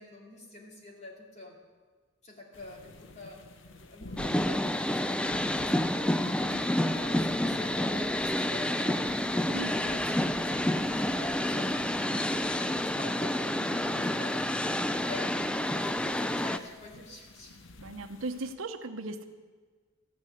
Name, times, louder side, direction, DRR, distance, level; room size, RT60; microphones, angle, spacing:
voice 1, 0.0-1.6 2.2-3.4 3.9-15.4 15.7-17.5, left 2 dB, 35° left, -1 dB, 2.6 m, -47 dB
sound 1, 2.5-18.5, left 2 dB, 65° left, 0.9 m, -50 dB
sound 2, 4.2-16.6, left 1 dB, 5° left, 0.4 m, -29 dB
voice 2, 9.5-10.0 17.8-19.2, right 2 dB, 85° right, 8 dB, 0.9 m, -38 dB
14.0 x 9.7 x 6.5 m, 1.4 s
head